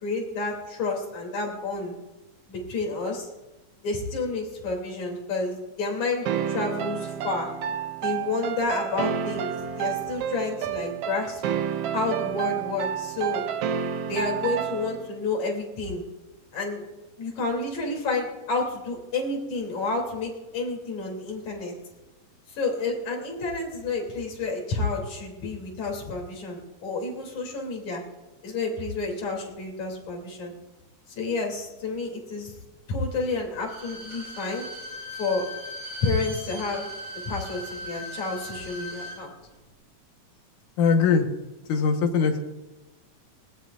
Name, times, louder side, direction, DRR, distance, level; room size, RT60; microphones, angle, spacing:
voice 1, 0.0-1.9 2.5-3.3 3.8-7.5 8.0-11.4 11.9-13.4 14.1-16.0 16.5-16.8 17.2-21.7 22.5-28.0 28.4-30.5 31.2-32.5 32.9-34.7 35.2-35.5 36.0-36.9 37.3-39.3, left 3 dB, 65° left, 0 dB, 4.3 m, -30 dB
sound 1, 6.3-15.1, right 8 dB, 75° right, 1.4 m, -30 dB
Bowed string instrument, 33.6-39.2 39.5-39.6, equal, 40° right, 6.3 m, -39 dB
voice 2, 40.8-41.3 41.7-42.4, left 5 dB, 80° left, 4 dB, 2.9 m, -21 dB
20.0 x 18.5 x 2.5 m, 1.1 s
omnidirectional pair, 3.6 m